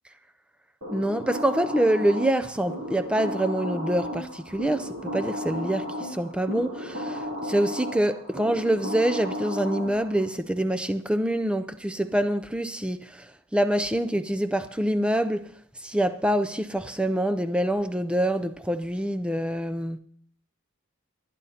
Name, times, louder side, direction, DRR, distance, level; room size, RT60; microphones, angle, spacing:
sound 1, 0.8-10.3, equal, 65° right, 3.5 m, -34 dB
voice 1, 0.9-15.5 15.8-20.0, right 1 dB, 5° right, 0.4 m, -26 dB
27.5 x 9.8 x 2.8 m
head